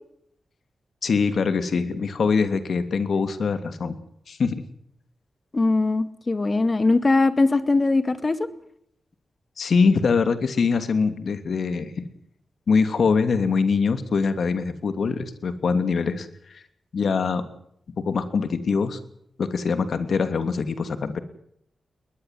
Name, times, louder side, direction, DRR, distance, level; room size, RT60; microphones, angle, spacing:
voice 1, 1.0-4.0 4.3-4.6 9.6-12.1 12.7-16.6 16.9-17.4 18.0-19.0 19.4-21.2, left 5 dB, 70° left, 11 dB, 3.0 m, -23 dB
voice 2, 5.5-8.4, left 3 dB, 30° left, 13 dB, 2.2 m, -21 dB
21.5 x 20.5 x 7.8 m, 0.70 s
wide cardioid pair, 100°, 0 cm